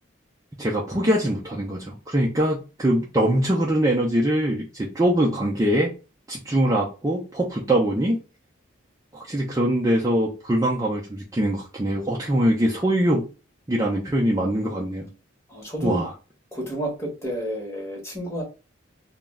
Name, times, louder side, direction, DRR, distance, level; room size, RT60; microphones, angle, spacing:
voice 1, 0.6-5.9 6.3-8.2 9.1-13.3 13.7-15.1 15.8-16.1, right 1 dB, 15° right, -3 dB, 0.4 m, -23 dB
voice 2, 15.5-16.0 16.5-18.4, right 1 dB, 15° left, -2 dB, 0.8 m, -30 dB
2.3 x 2.0 x 3.4 m, 0.31 s
head